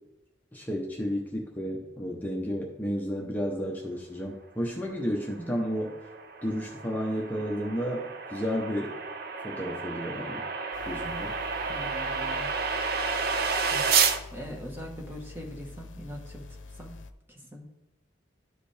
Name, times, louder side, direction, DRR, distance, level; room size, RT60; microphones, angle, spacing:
voice 1, 0.5-5.9 6.4-9.0 9.4-10.4 10.9-11.3, equal, 10° left, -2 dB, 0.9 m, -32 dB
sound 1, 5.5-14.2, right 5 dB, 50° right, 0.6 m, -30 dB
sound 2, 10.7-17.1, left 3 dB, 90° left, 0.7 m, -46 dB
voice 2, 11.7-12.5 13.7-13.8 14.3-16.4 16.8-17.0 17.3-17.7, equal, 10° right, 0 dB, 1.2 m, -41 dB
13.0 x 4.9 x 3.4 m, 0.96 s
head